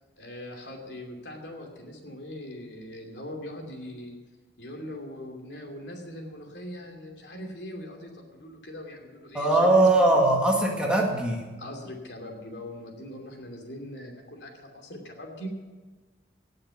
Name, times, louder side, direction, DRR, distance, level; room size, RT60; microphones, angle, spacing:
voice 1, 0.2-4.2 4.6-9.9 11.6-15.5, equal, 70° left, 2 dB, 2.7 m, -41 dB
voice 2, 9.3-11.4, right 2 dB, 5° right, -1 dB, 1.8 m, -21 dB
18.5 x 6.6 x 7.1 m, 1.3 s
head